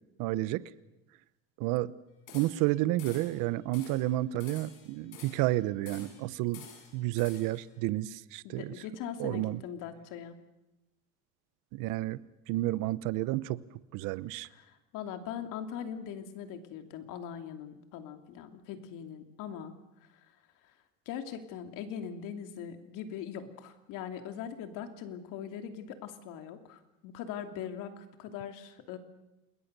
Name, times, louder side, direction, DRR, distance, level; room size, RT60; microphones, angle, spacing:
voice 1, 0.2-0.6 1.6-1.9 2.3-6.7 6.9-8.7 9.2-9.6 11.7-12.2 12.5-13.6 13.9-14.5, right 17 dB, 75° right, 17 dB, 0.9 m, -31 dB
sound 1, 2.3-2.7 3.0-3.4 3.7-4.1 4.4-5.5 5.9-6.3 6.5-7.6, left 7 dB, 90° left, 6.8 m, -50 dB
voice 2, 8.4-10.4 14.5-19.7 20.0-20.1 20.6-20.7 21.1-29.0, left 8 dB, 70° left, 7 dB, 2.9 m, -41 dB
28.5 x 21.0 x 6.8 m, 0.98 s
cardioid pair, 130°, 33 cm